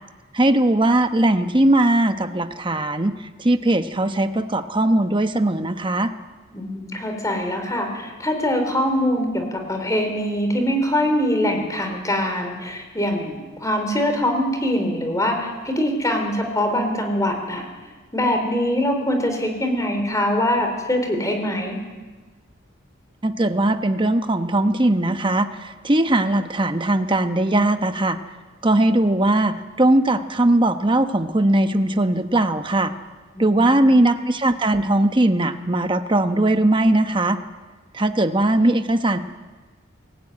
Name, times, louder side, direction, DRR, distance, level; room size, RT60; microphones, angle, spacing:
voice 1, 0.3-3.1 3.4-6.1 23.2-28.2 28.6-32.9 33.4-37.4 37.9-39.2, right 1 dB, 25° right, 8 dB, 1.0 m, -19 dB
voice 2, 6.5-17.7 18.1-21.8 33.4-33.9, left 1 dB, 15° left, 4 dB, 3.8 m, -23 dB
23.5 x 16.0 x 9.8 m, 1.3 s
head